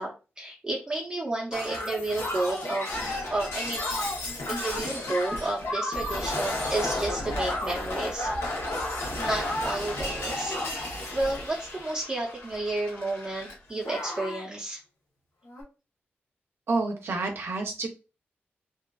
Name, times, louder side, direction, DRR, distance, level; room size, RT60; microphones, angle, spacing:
voice 1, 0.0-2.9 3.3-3.8 4.5-8.3 9.2-10.6 11.1-14.8, right 2 dB, 20° right, -3 dB, 0.6 m, -31 dB
Shatter, 1.5-13.6 13.8-14.4 15.5-15.6, left 1 dB, 80° left, 0.8 m, -32 dB
sound 1, 1.8-2.5 3.7-4.6 5.9-6.6 7.6-8.2, left 1 dB, 40° left, 0.8 m, -48 dB
voice 2, 16.7-17.9, right 3 dB, 70° right, 3 dB, 0.5 m, -29 dB
2.6 x 2.4 x 2.3 m, 0.31 s
wide cardioid pair, 125°, 4 cm